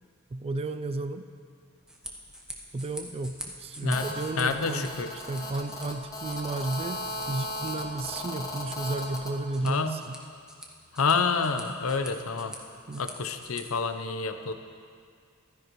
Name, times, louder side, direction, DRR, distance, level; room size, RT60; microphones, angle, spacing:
voice 1, 0.3-1.3 2.7-10.2 12.9-13.1, right 2 dB, 30° right, 9 dB, 0.3 m, -33 dB
sound 1, 1.7-13.6, equal, 5° right, 1.0 m, -46 dB
Telephone, 3.9-9.3, left 1 dB, 15° left, 1.2 m, -36 dB
voice 2, 4.4-5.1 9.6-10.0 11.0-12.5 13.0-14.5, left 4 dB, 70° left, 8 dB, 0.7 m, -28 dB
15.0 x 13.0 x 3.1 m, 2.2 s
head